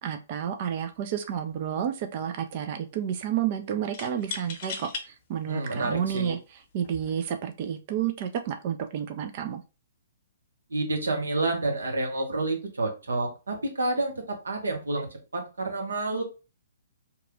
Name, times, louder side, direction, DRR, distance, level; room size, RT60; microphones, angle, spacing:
voice 1, 0.0-9.6, right 9 dB, 40° right, 7 dB, 0.4 m, -31 dB
sound 1, 0.8-1.0 1.4-2.0 3.9-5.1 5.8-5.9 6.8-7.1, left 5 dB, 40° left, 0.8 m, -38 dB
voice 2, 5.5-6.3 10.7-15.1 15.3-16.2, right 2 dB, 75° right, 2 dB, 1.0 m, -29 dB
2.9 x 2.3 x 3.6 m, 0.30 s
figure-of-eight pair, 125°, 0 cm